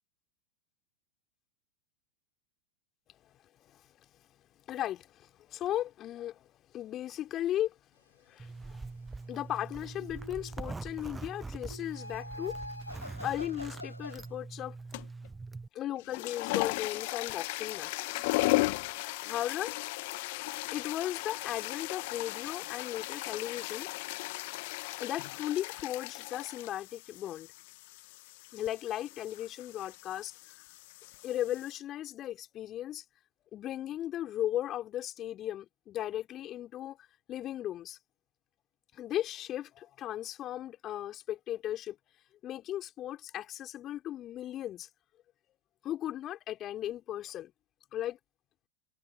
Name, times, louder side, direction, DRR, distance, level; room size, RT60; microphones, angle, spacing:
voice 1, 4.7-6.5 6.7-7.8 8.2-8.8 9.3-12.6 13.2-14.8 15.7-18.2 19.2-19.7 20.7-23.9 25.0-27.5 28.5-30.3 31.2-33.0 33.5-37.0 37.3-38.0 38.9-42.0 42.4-44.9 45.8-47.5 47.9-48.2, left 12 dB, 30° left, 3.3 m, -36 dB
Zipper (clothing), 8.4-15.7, right 3 dB, 10° right, 0.6 m, -43 dB
sound 1, 9.7-10.7 11.7-14.3, left 1 dB, 85° left, 0.7 m, -45 dB
sound 2, 14.9-15.3 15.9-31.8, left 24 dB, 50° left, 0.8 m, -36 dB
figure-of-eight pair, 90°, 0 cm